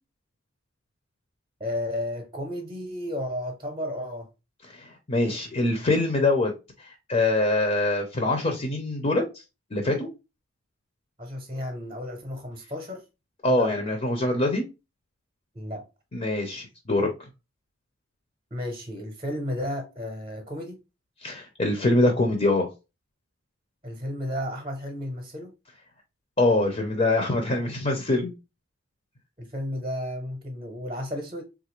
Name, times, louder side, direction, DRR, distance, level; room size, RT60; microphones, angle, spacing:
voice 1, 1.6-4.3 11.2-13.0 13.5-13.7 15.5-15.8 18.5-20.8 23.8-25.5 29.4-31.4, left 1 dB, 25° right, 0.8 m, -33 dB
voice 2, 4.7-6.5 6.8-9.2 9.7-10.1 13.4-14.7 16.1-17.1 21.2-22.7 26.4-28.3, left 2 dB, 30° left, 0.6 m, -24 dB
3.6 x 2.5 x 3.0 m
head